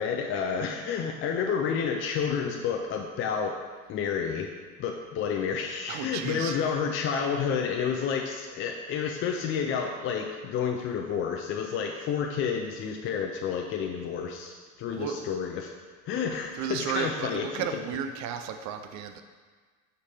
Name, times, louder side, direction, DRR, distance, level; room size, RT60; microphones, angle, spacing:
voice 1, 0.0-3.6 3.9-4.5 4.8-15.7 16.1-17.7, left 6 dB, 30° left, 2 dB, 0.5 m, -30 dB
voice 2, 5.9-6.6 14.9-15.2 16.6-19.2, right 8 dB, 45° right, 7 dB, 0.6 m, -33 dB
5.2 x 4.8 x 4.2 m, 1.5 s
hypercardioid pair, 95°, 40 cm